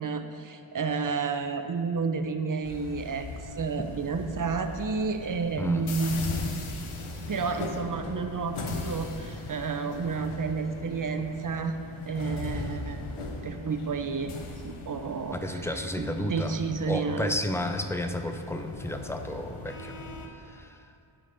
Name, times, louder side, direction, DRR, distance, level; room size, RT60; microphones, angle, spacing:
voice 1, 0.0-3.3 3.6-6.2 7.3-11.7 12.1-13.0 13.4-14.3 14.6-17.4, right 5 dB, 40° right, 7 dB, 0.6 m, -31 dB
sound 1, 2.6-20.3, left 3 dB, 90° left, 0.7 m, -39 dB
voice 2, 15.3-16.5 16.9-20.0 20.4-20.9, left 1 dB, 5° left, 6 dB, 0.4 m, -32 dB
12.0 x 5.0 x 2.6 m, 2.5 s
cardioid pair, 45°, 48 cm